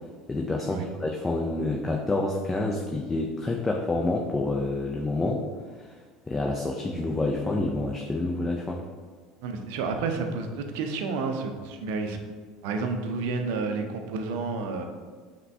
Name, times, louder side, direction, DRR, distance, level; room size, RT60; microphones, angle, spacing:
voice 1, 0.3-5.4 5.8-5.9 6.3-8.8, left 2 dB, 20° left, 0 dB, 0.4 m, -28 dB
voice 2, 9.4-12.2 12.6-14.8, right 4 dB, 65° right, 5 dB, 0.5 m, -30 dB
5.7 x 2.2 x 3.3 m, 1.5 s
hypercardioid pair, 70°, 0 cm